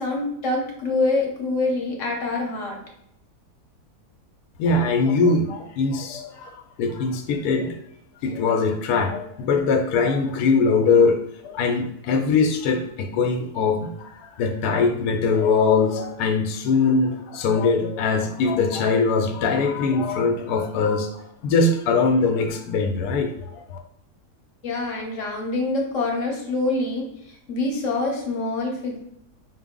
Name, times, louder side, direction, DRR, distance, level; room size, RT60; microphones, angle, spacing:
voice 1, 0.0-2.8 24.6-29.0, left 2 dB, 55° left, 0 dB, 1.1 m, -25 dB
voice 2, 4.6-7.8 8.2-21.1 21.4-23.8, left 4 dB, 75° left, 3 dB, 1.1 m, -22 dB
5.2 x 2.0 x 3.6 m, 0.73 s
omnidirectional pair, 1.7 m